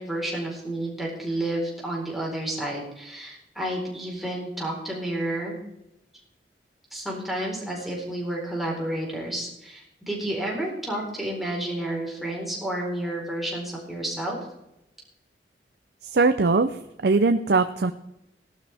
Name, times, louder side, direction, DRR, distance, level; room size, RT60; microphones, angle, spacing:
voice 1, 0.0-5.6 6.9-14.4, right 1 dB, ahead, -4 dB, 4.3 m, -30 dB
voice 2, 16.0-17.9, right 3 dB, 65° right, 9 dB, 0.6 m, -21 dB
17.5 x 12.0 x 3.5 m, 0.86 s
head